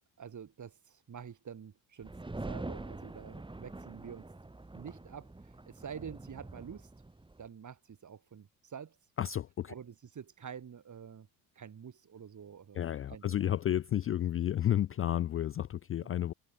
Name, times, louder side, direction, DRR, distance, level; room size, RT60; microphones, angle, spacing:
voice 1, 0.0-4.3 4.7-6.9 7.4-9.0 9.7-11.3 11.6-13.5 16.0-16.2, right 7 dB, 35° right, 2.6 m, -48 dB
sound 1, 2.0-7.5, right 2 dB, 10° right, 1.6 m, -45 dB
voice 2, 9.2-9.7 12.7-16.3, left 11 dB, 30° left, 0.5 m, -31 dB
figure-of-eight pair, 50°, 50 cm